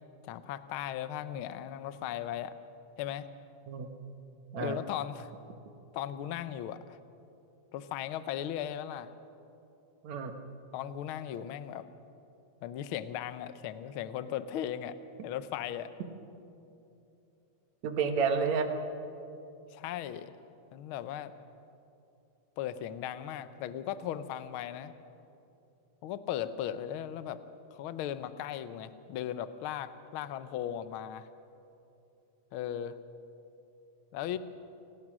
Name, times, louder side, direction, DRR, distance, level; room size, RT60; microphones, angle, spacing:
voice 1, 0.2-2.5 3.0-3.3 4.6-5.3 5.9-7.0 7.7-9.1 10.7-11.9 12.6-15.0 15.2-15.9 19.7-20.3 20.7-21.3 22.6-24.9 26.0-27.4 27.7-31.3 32.5-33.0 34.1-34.4, left 10 dB, 70° left, 12 dB, 1.2 m, -37 dB
voice 2, 10.0-10.4 17.8-18.7, right 5 dB, 70° right, 7 dB, 2.5 m, -30 dB
28.5 x 18.5 x 6.2 m, 2.8 s
omnidirectional pair, 3.4 m